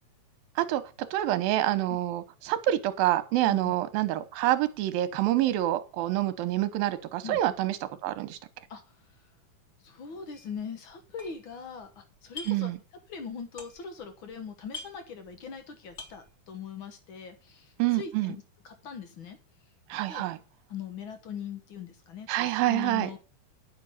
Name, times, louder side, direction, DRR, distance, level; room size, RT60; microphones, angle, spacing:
voice 1, 1.1-8.4 12.5-12.8 17.8-18.4 19.9-20.4 22.3-23.1, right 14 dB, 75° right, 2.6 m, -27 dB
voice 2, 8.7-9.3 9.8-12.7 13.1-19.4 20.1-20.3 20.7-23.2, left 6 dB, 90° left, 1.1 m, -41 dB
sound 1, 10.3-10.6 10.9-11.9 12.1-12.8 13.1-14.1 14.3-14.4 14.6-15.6 15.9-16.3, left 4 dB, 25° left, 1.5 m, -44 dB
10.0 x 5.9 x 8.5 m
omnidirectional pair, 4.3 m